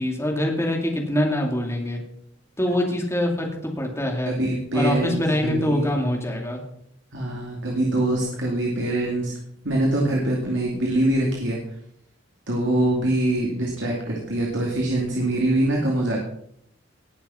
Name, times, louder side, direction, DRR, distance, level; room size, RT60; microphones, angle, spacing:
voice 1, 0.0-2.0 2.6-4.4 4.7-6.6, left 1 dB, 15° left, 0 dB, 2.5 m, -24 dB
voice 2, 4.3-5.9 7.1-9.4 9.6-11.6 12.5-16.2, right 1 dB, 65° right, -2 dB, 2.5 m, -24 dB
19.0 x 7.0 x 5.6 m, 0.74 s
head